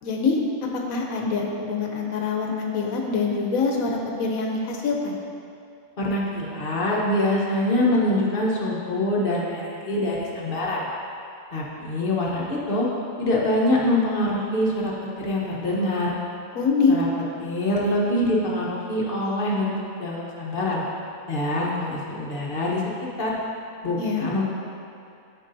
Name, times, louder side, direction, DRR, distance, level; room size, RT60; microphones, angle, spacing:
voice 1, 0.0-5.2 16.5-17.0 24.0-24.3, left 4 dB, 90° left, 0 dB, 1.2 m, -24 dB
voice 2, 6.0-10.9 11.5-12.9 13.2-16.2 16.9-17.1 17.4-20.8 21.3-22.8 23.2-23.4 23.8-24.4, left 1 dB, 45° left, -4 dB, 1.1 m, -24 dB
12.0 x 4.7 x 2.6 m, 2.5 s
omnidirectional pair, 1.4 m